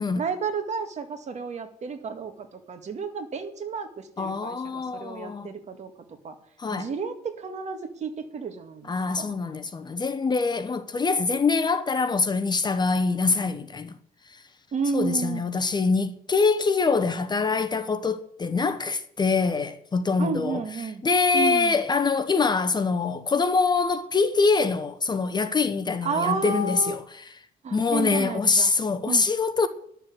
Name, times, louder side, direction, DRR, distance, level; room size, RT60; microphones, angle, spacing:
voice 1, 0.2-6.4 6.7-9.4 14.7-15.4 20.2-21.0 21.3-21.8 26.0-26.9 27.6-28.7 29.1-29.3, right 5 dB, 40° right, 2.1 m, -31 dB
voice 2, 4.2-5.5 6.6-6.9 8.9-14.0 14.3-14.4 14.9-20.6 21.0-27.0 27.7-29.7, left 4 dB, 25° left, 1.0 m, -24 dB
11.5 x 7.3 x 9.4 m
cardioid pair, 110°, 17 cm